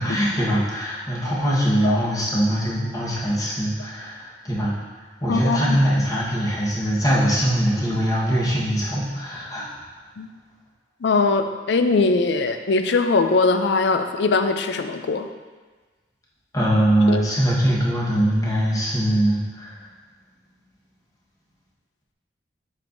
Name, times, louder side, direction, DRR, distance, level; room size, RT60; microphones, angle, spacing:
voice 1, 0.0-4.8 5.2-9.7 16.5-19.9, right 1 dB, 20° left, -6 dB, 1.3 m, -22 dB
voice 2, 5.3-5.8 10.2-10.3 11.0-15.3 17.1-17.3, left 3 dB, 75° left, 7 dB, 0.4 m, -21 dB
7.5 x 5.3 x 2.6 m, 1.4 s
head